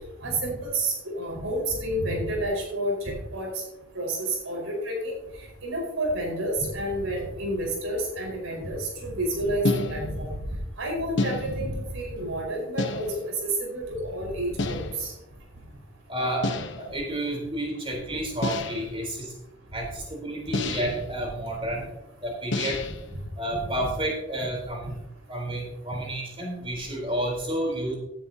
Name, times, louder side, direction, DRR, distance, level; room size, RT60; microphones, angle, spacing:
voice 1, 0.2-3.5 3.9-5.1 5.6-10.3 10.8-13.2 13.6-15.1 23.8-23.9, right 1 dB, 90° right, 0 dB, 4.9 m, -29 dB
sound 1, 9.6-10.3 11.2-11.8 12.8-13.4 14.6-15.1 16.4-16.9 18.4-19.0 20.5-21.1 22.5-23.1, left 2 dB, 60° left, 1.0 m, -29 dB
voice 2, 16.1-19.3 19.7-21.9 22.2-22.8 23.4-25.0 25.3-28.0, right 1 dB, 25° right, 0 dB, 3.9 m, -30 dB
16.5 x 10.5 x 2.8 m, 0.91 s
head